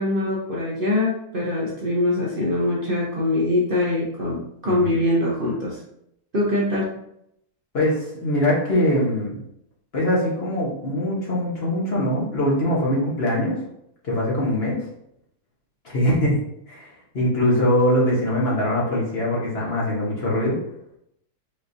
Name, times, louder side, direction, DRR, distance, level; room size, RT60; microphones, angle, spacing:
voice 1, 0.0-5.8 6.3-6.9, left 1 dB, 40° right, -6 dB, 0.9 m, -23 dB
voice 2, 7.7-9.4 9.9-13.6 14.0-14.8 15.8-16.4 16.7-20.6, left 1 dB, 45° left, -5 dB, 1.3 m, -22 dB
5.1 x 3.1 x 2.7 m, 0.77 s
omnidirectional pair, 1.6 m